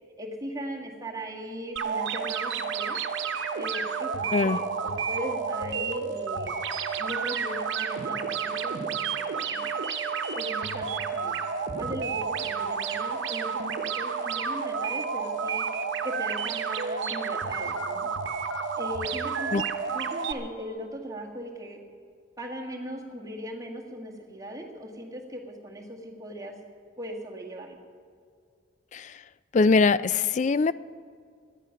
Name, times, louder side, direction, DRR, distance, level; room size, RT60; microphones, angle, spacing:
voice 1, 0.2-3.0 3.5-6.5 7.0-9.7 10.3-11.4 11.8-15.7 16.0-18.1 18.8-19.7 19.9-21.8 22.4-26.5 27.0-27.8, equal, 15° right, -1 dB, 1.7 m, -38 dB
sound 1, 1.8-20.3, right 6 dB, 65° right, 1.0 m, -30 dB
voice 2, 29.5-30.7, left 4 dB, 35° left, 17 dB, 0.3 m, -22 dB
18.0 x 12.0 x 5.8 m, 2.2 s
head